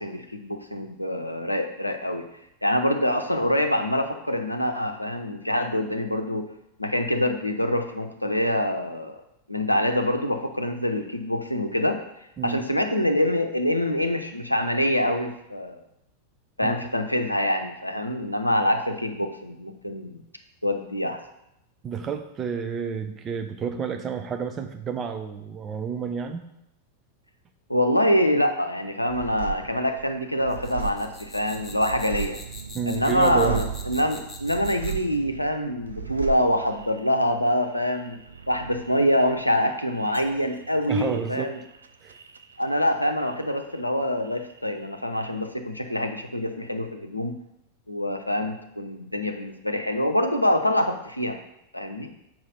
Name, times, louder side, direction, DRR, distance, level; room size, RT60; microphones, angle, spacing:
voice 1, 0.0-2.2 2.6-6.5 6.8-9.2 9.5-12.0 12.4-15.8 16.6-20.2 20.6-21.2 27.7-32.4 32.9-38.2 38.5-41.5 42.6-47.4 47.9-51.4 51.7-52.1, left 1 dB, 90° left, 5 dB, 0.6 m, -25 dB
voice 2, 21.8-26.5 32.7-33.6 40.9-41.5 42.0-42.2, right 6 dB, 25° right, 6 dB, 0.7 m, -30 dB
sound 1, 29.1-44.0 44.2-45.1, right 8 dB, 75° right, 0.4 m, -37 dB
sound 2, 30.5-35.1, left 3 dB, 15° left, 0.9 m, -43 dB
4.9 x 4.7 x 5.5 m, 0.82 s
figure-of-eight pair, 90°, 0 cm